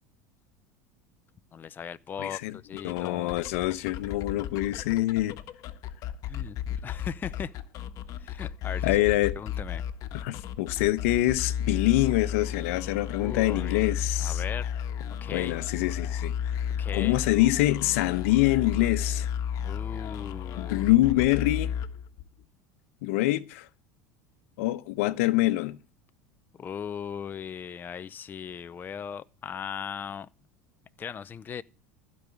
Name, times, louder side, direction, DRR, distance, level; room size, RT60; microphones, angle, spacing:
voice 1, 1.5-3.4 6.2-7.5 8.2-9.0 9.4-9.8 13.2-13.9 14.2-14.7 15.2-15.6 16.8-17.2 19.6-20.8 26.6-30.3 31.0-31.6, left 7 dB, 25° left, 0.6 m, -38 dB
voice 2, 2.2-2.6 2.8-5.3 8.8-9.4 10.1-14.4 15.3-16.3 16.9-19.3 20.6-21.7 23.0-23.7 24.6-25.8, left 17 dB, 75° left, 1.0 m, -25 dB
sound 1, 2.7-22.4, left 9 dB, 50° left, 1.5 m, -33 dB
15.5 x 5.3 x 8.5 m
supercardioid pair, 110°, 7 cm